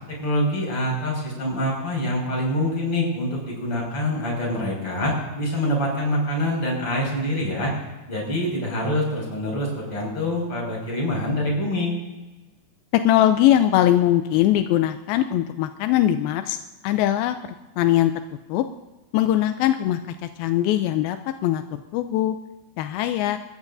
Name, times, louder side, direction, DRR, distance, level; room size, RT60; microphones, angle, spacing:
voice 1, 0.1-7.7 8.1-11.9, left 1 dB, 30° left, -2 dB, 6.9 m, -25 dB
voice 2, 12.9-16.6 16.8-17.4 17.8-18.1 18.5-18.6 19.1-21.2 21.4-21.6 21.9-22.4 22.8-23.4, left 12 dB, 80° left, 8 dB, 2.2 m, -20 dB
29.0 x 14.5 x 2.7 m, 1.2 s
omnidirectional pair, 4.8 m